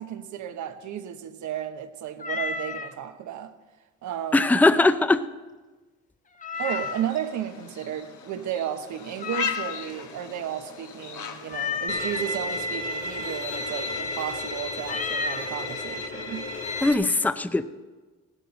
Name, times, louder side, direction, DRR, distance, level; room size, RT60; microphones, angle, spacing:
voice 1, 0.0-3.5 4.0-4.6 6.6-16.5, right 10 dB, 75° right, 1.1 m, -33 dB
Meow, 2.2-2.9 6.4-7.2 9.2-10.0 11.5-12.2 14.8-15.5, left 5 dB, 25° left, 0.9 m, -31 dB
voice 2, 4.3-5.2 16.8-17.7, left 2 dB, 5° left, 0.5 m, -20 dB
sound 1, 6.5-11.8, left 7 dB, 75° left, 1.4 m, -38 dB
Bowed string instrument, 11.9-16.9, left 1 dB, 45° left, 2.2 m, -32 dB
16.0 x 12.5 x 4.1 m
cardioid pair, 90°, 30 cm